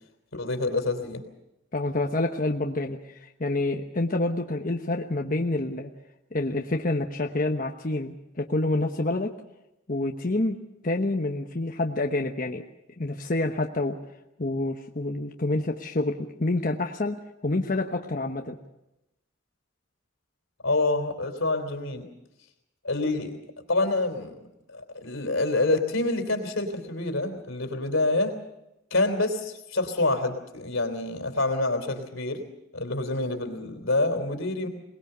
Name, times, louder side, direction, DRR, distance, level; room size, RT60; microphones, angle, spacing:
voice 1, 0.3-1.2 20.6-22.1 22.8-23.3 23.7-24.3 24.7-28.4 28.9-32.4 32.7-34.7, left 2 dB, 85° left, 6 dB, 3.4 m, -27 dB
voice 2, 1.7-5.9 6.3-9.3 9.9-10.6 10.8-12.6 13.0-14.0 14.4-18.6, left 2 dB, 45° left, 3 dB, 1.1 m, -28 dB
22.0 x 20.5 x 6.8 m, 0.89 s
head